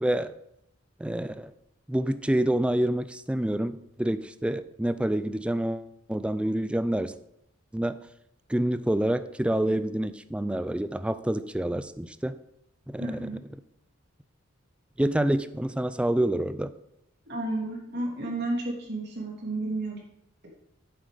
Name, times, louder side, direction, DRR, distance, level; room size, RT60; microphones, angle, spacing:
voice 1, 0.0-0.3 1.0-1.5 1.9-7.1 7.7-8.0 8.5-12.3 12.9-13.3 15.0-16.7, right 1 dB, 5° right, 12 dB, 0.3 m, -27 dB
voice 2, 13.0-13.4 17.3-20.0, right 2 dB, 55° right, -2 dB, 3.1 m, -32 dB
9.2 x 7.4 x 5.1 m, 0.80 s
head